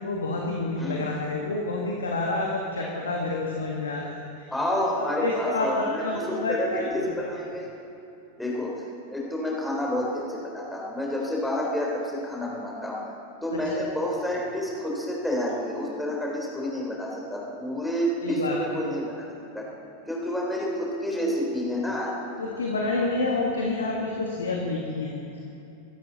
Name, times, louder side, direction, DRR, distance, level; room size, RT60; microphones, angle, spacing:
voice 1, 0.0-4.5 4.8-6.8 7.2-7.3 13.5-13.8 18.2-18.6 22.4-25.4, left 2 dB, 70° left, -1 dB, 1.7 m, -29 dB
voice 2, 4.5-7.7 8.4-8.8 9.1-13.0 13.4-19.1 19.5-19.7 20.1-22.1, left 1 dB, 5° left, -3 dB, 3.8 m, -29 dB
24.5 x 12.0 x 4.2 m, 2.8 s
figure-of-eight pair, 90°, 0 cm